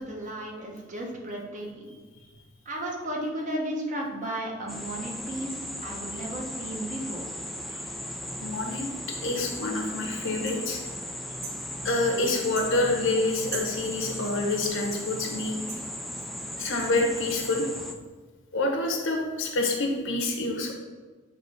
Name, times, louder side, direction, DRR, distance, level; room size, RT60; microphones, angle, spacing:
voice 1, 0.0-1.9 2.6-7.2, right 1 dB, 40° right, -1 dB, 1.2 m, -34 dB
sound 1, 4.7-17.9, left 1 dB, ahead, 0.4 m, -37 dB
voice 2, 8.4-8.8 9.2-10.8 11.8-15.6 16.6-17.7 18.5-20.7, left 2 dB, 65° left, 2 dB, 1.1 m, -27 dB
sound 2, 10.5-10.6 11.4-11.6 12.5-12.7 13.5-13.7 14.6-14.8 15.7-15.8 16.8-16.9, right 6 dB, 90° right, 0.9 m, -38 dB
7.6 x 3.2 x 5.1 m, 1.3 s
head